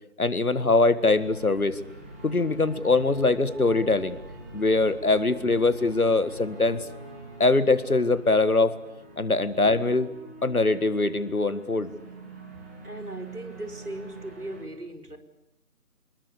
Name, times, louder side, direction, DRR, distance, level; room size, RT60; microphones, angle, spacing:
voice 1, 0.2-1.8 2.2-4.2 4.5-6.8 7.4-8.7 9.2-10.1 10.4-11.9, left 3 dB, 70° left, 14 dB, 2.1 m, -22 dB
sound 1, 1.0-14.6, right 2 dB, 10° right, 2.4 m, -45 dB
voice 2, 12.8-15.2, right 1 dB, 90° right, 6 dB, 4.4 m, -38 dB
27.0 x 21.0 x 8.5 m, 0.84 s
figure-of-eight pair, 165°, 44 cm